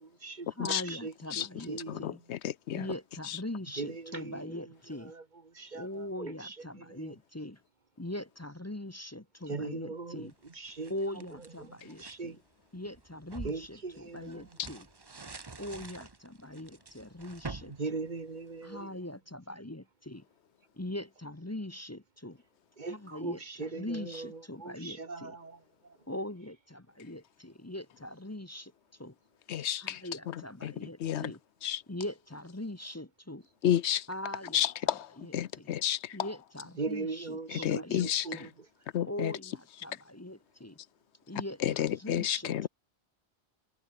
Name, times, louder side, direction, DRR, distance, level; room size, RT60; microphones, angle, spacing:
voice 1, 0.0-2.2 3.8-4.7 5.0-7.1 9.5-10.9 11.6-12.4 13.4-14.5 17.7-19.0 22.8-26.0 36.8-38.5, right 3 dB, 45° right, 1.6 m, -40 dB
voice 2, 0.6-2.2 2.7-5.1 5.7-7.6 8.0-10.3 10.9-12.4 12.7-14.9 15.6-17.7 18.6-20.2 20.7-22.4 22.9-25.3 26.1-28.7 29.0-29.1 29.8-31.4 31.9-33.5 34.1-34.6 35.2-35.7 36.1-38.5 39.1-40.8 41.3-42.7, left 1 dB, 15° left, 1.0 m, -41 dB
voice 3, 1.9-2.9 3.2-3.4 29.5-30.7 31.0-31.3 31.6-31.8 33.6-34.1 34.5-36.3 37.5-38.5 38.9-39.3 41.6-42.7, left 11 dB, 85° left, 1.0 m, -31 dB
sound 1, 10.3-12.2 12.7-18.8, right 3 dB, 25° right, 0.8 m, -47 dB
omnidirectional pair, 1.1 m